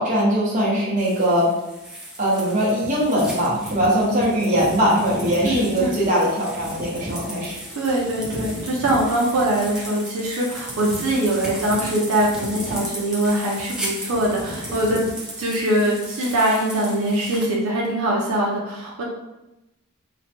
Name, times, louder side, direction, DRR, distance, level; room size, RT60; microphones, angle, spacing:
voice 1, 0.0-1.5 2.2-7.6, equal, 35° right, -6 dB, 0.9 m, -21 dB
sound 1, 1.0-17.5, right 1 dB, 5° right, 0.5 m, -34 dB
voice 2, 5.4-5.9 7.7-15.0 15.4-19.0, right 1 dB, 75° right, -4 dB, 0.6 m, -22 dB
3.0 x 2.2 x 2.8 m, 0.96 s
head